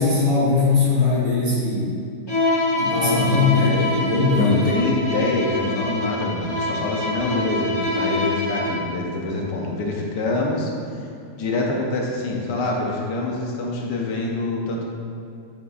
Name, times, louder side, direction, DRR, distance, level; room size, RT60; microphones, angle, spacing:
voice 1, 0.0-1.9 2.8-4.9, left 3 dB, 55° right, -7 dB, 2.1 m, -20 dB
Bowed string instrument, 2.3-8.9, left 2 dB, 30° left, 0.5 m, -25 dB
voice 2, 4.3-10.7 11.4-14.8, left 2 dB, 85° left, -1 dB, 1.5 m, -25 dB
8.0 x 5.3 x 2.5 m, 2.4 s
omnidirectional pair, 1.8 m